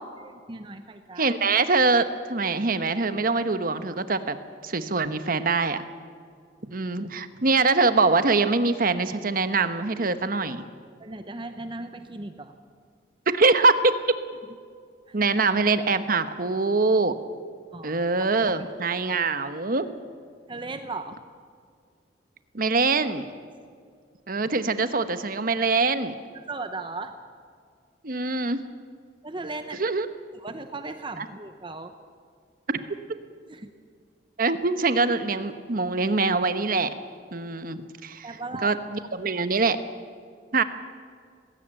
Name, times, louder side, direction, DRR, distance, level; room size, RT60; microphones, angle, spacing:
voice 1, 0.2-1.3 11.0-12.6 15.1-15.2 17.7-18.7 20.5-21.2 26.3-27.2 29.2-29.9 30.3-31.9 33.5-33.7 38.2-38.8, right 3 dB, 25° right, 8 dB, 0.8 m, -37 dB
voice 2, 1.2-4.4 4.6-5.8 6.7-10.6 13.3-14.0 15.1-17.2 17.8-19.9 22.5-23.2 24.3-26.2 28.0-28.6 29.8-30.1 31.2-31.3 32.7-32.8 34.4-36.9 37.3-38.3 38.6-39.8 40.5-40.6, right 3 dB, 50° right, 11 dB, 1.1 m, -23 dB
19.5 x 17.0 x 8.9 m, 2.1 s
head